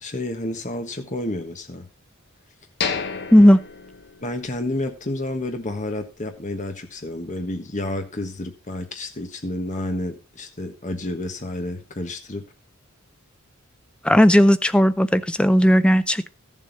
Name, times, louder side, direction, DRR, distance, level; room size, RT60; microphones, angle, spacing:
voice 1, 0.0-1.9 4.2-12.4, left 1 dB, 35° left, 5 dB, 1.4 m, -30 dB
sound 1, 2.8-4.7 5.1-5.2 5.7-5.9, left 6 dB, 50° left, 1.1 m, -31 dB
voice 2, 14.0-16.3, equal, 5° left, 13 dB, 0.4 m, -15 dB
13.5 x 7.5 x 4.0 m, 0.30 s
head